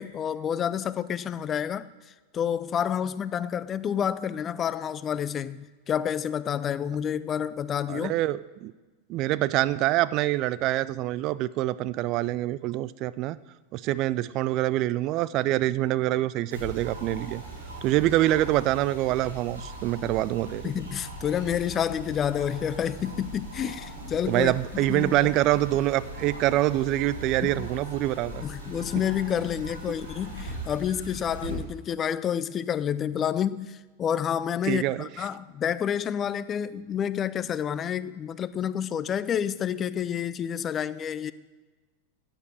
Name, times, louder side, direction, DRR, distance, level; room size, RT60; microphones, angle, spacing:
voice 1, 0.0-1.9 2.3-8.2 20.6-24.5 24.9-25.3 27.4-27.7 28.4-41.3, left 9 dB, 25° left, 0.4 m, -29 dB
voice 2, 7.9-8.7 9.1-13.4 13.7-17.4 17.8-20.6 24.3-28.4 31.5-31.7 34.6-35.1, right 15 dB, 40° right, 0.3 m, -25 dB
sound 1, 16.5-31.5, right 1 dB, 75° right, 4.5 m, -40 dB
14.5 x 9.0 x 4.8 m
figure-of-eight pair, 90°, 0 cm